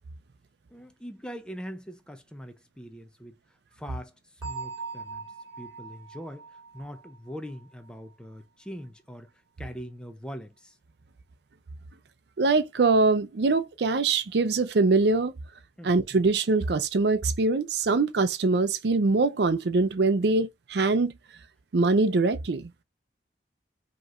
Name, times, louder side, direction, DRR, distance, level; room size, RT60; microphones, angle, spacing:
voice 1, 0.7-3.4 3.8-4.1 4.4-5.3 5.6-6.4 6.7-9.3 9.6-10.8 15.8-16.2, equal, 5° left, 0.5 m, -42 dB
Bell, 4.4-8.1, right 4 dB, 20° right, 2.2 m, -41 dB
voice 2, 12.4-15.3 15.8-21.1 21.7-22.7, right 3 dB, 65° right, 0.5 m, -23 dB
5.0 x 3.0 x 2.5 m
head